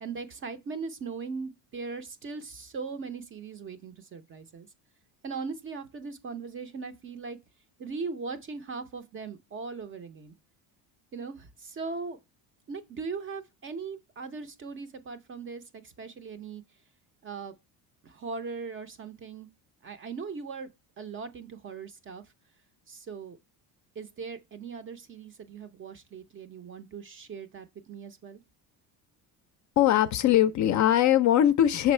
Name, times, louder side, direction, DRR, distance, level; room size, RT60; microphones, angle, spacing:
voice 1, 0.0-4.7 5.2-7.4 7.8-10.3 11.1-12.2 12.7-16.6 17.2-17.5 18.0-19.5 19.8-20.7 21.0-22.2 22.9-23.4 24.0-28.4, right 4 dB, 30° right, 0.5 m, -39 dB
voice 2, 29.8-31.9, left 11 dB, 45° left, 0.4 m, -21 dB
6.1 x 3.9 x 4.3 m
cardioid pair, 130°, 43 cm